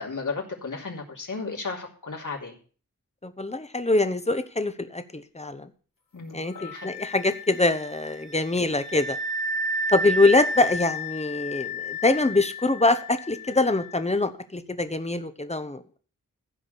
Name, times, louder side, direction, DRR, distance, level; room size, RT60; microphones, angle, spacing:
voice 1, 0.0-2.6 6.1-6.9, left 4 dB, 65° left, -1 dB, 3.7 m, -34 dB
voice 2, 3.2-5.7 6.3-9.2 9.9-15.8, left 2 dB, 20° left, 10 dB, 1.2 m, -24 dB
Wind instrument woodwind instrument, 6.5-14.0, equal, 85° left, 3.2 m, -32 dB
15.0 x 5.1 x 8.2 m, 0.41 s
wide cardioid pair, 90°, 33 cm